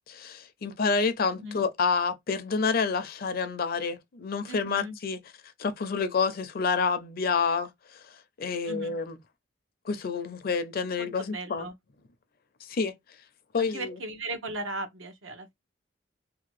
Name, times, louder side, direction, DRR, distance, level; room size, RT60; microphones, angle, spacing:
voice 1, 0.1-5.2 5.6-7.7 8.4-9.2 9.9-11.7 12.6-13.0 13.5-14.0, left 5 dB, 50° left, 0.5 m, -28 dB
voice 2, 4.5-5.0 8.7-8.9 11.0-11.7 13.6-15.5, right 2 dB, 85° right, 0.9 m, -37 dB
2.8 x 2.3 x 3.0 m
head